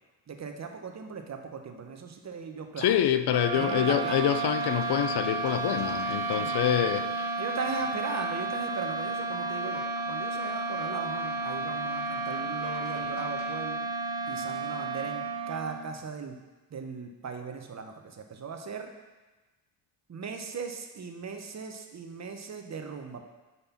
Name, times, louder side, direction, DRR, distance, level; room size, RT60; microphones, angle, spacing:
voice 1, 0.3-3.0 3.5-4.2 6.4-6.9 7.4-13.8 14.3-16.4 16.7-18.9 20.1-23.2, right 5 dB, 35° right, 5 dB, 0.9 m, -38 dB
voice 2, 2.8-7.3, left 11 dB, 55° left, 11 dB, 0.6 m, -26 dB
sound 1, 3.2-16.0, right 3 dB, 60° right, 1.0 m, -32 dB
sound 2, 3.5-13.6, left 5 dB, 80° left, 0.8 m, -50 dB
5.3 x 4.1 x 5.8 m, 1.2 s
supercardioid pair, 60°, 47 cm